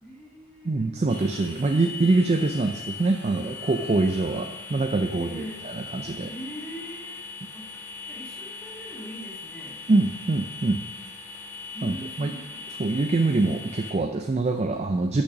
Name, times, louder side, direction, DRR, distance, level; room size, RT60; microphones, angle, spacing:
voice 1, 0.0-1.0 5.1-5.6 6.3-7.3 7.5-9.8 11.7-12.6, equal, 5° left, -6 dB, 2.0 m, -41 dB
voice 2, 0.6-5.4 5.7-6.3 9.9-10.8 11.8-12.3 12.8-15.2, right 3 dB, 30° right, 5 dB, 0.4 m, -24 dB
sound 1, 1.1-13.9, left 4 dB, 75° left, 2.4 m, -40 dB
6.4 x 6.0 x 6.0 m, 1.1 s
head